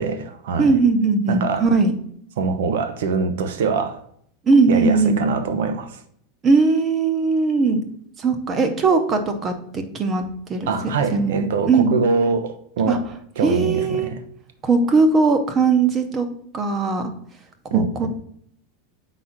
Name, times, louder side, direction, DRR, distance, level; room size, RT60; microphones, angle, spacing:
voice 1, 0.0-0.8 1.3-1.6 2.4-4.0 4.7-6.0 10.7-13.0 13.4-14.2 17.7-18.1, right 4 dB, 90° right, 0.8 m, -23 dB
voice 2, 0.6-1.9 4.5-5.2 6.4-7.8 8.2-10.7 11.1-11.9 12.9-13.0 13.4-14.1 14.6-16.3 16.5-17.1 17.7-18.1, right 4 dB, 20° right, 0.7 m, -19 dB
4.8 x 4.0 x 5.7 m
supercardioid pair, 180°, 0 cm